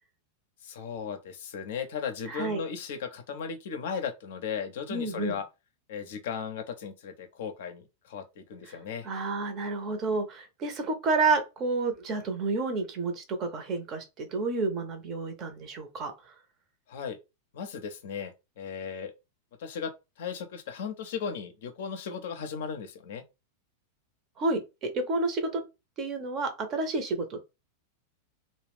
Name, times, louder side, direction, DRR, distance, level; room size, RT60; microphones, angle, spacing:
voice 1, 0.6-5.5 5.9-9.1 16.9-17.2 17.5-19.1 19.6-19.9 20.2-23.2, left 6 dB, 55° left, 0.5 m, -36 dB
voice 2, 2.3-2.6 4.9-5.4 9.0-16.1 24.4-25.6 26.0-27.4, right 3 dB, 35° right, 0.6 m, -30 dB
2.4 x 2.1 x 3.3 m
figure-of-eight pair, 90°, 0 cm